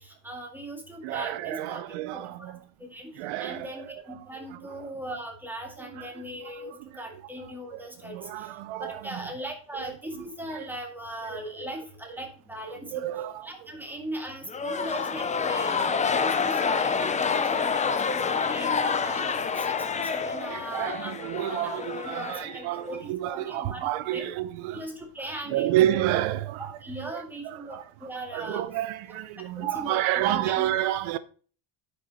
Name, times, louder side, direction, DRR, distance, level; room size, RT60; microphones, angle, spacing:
voice 1, 0.0-21.1 21.5-21.7 22.0-24.3 24.7-25.8 26.6-28.6 29.1-29.2 29.6-30.7, right 1 dB, 5° right, 2.1 m, -39 dB
voice 2, 1.0-2.6 3.2-3.7 4.8-4.9 6.0-6.1 7.7-8.9 10.5-10.7 11.3-11.4 12.9-13.5 20.5-24.8 25.5-26.7 27.0-27.8 28.3-31.2, right 13 dB, 80° right, 0.7 m, -29 dB
sound 1, 14.5-22.9, left 5 dB, 15° left, 0.4 m, -27 dB
9.4 x 5.6 x 4.2 m
cardioid pair, 145°, 48 cm